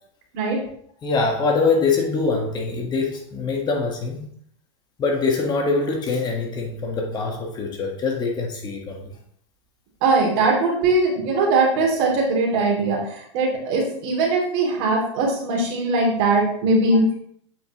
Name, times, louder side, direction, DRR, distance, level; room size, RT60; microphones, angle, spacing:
voice 1, 1.0-4.3 5.0-9.1, left 4 dB, 30° left, 1 dB, 1.5 m, -23 dB
voice 2, 10.0-17.1, right 3 dB, 50° right, -1 dB, 2.8 m, -20 dB
7.7 x 5.5 x 3.0 m, 0.63 s
hypercardioid pair, 100°, 15 cm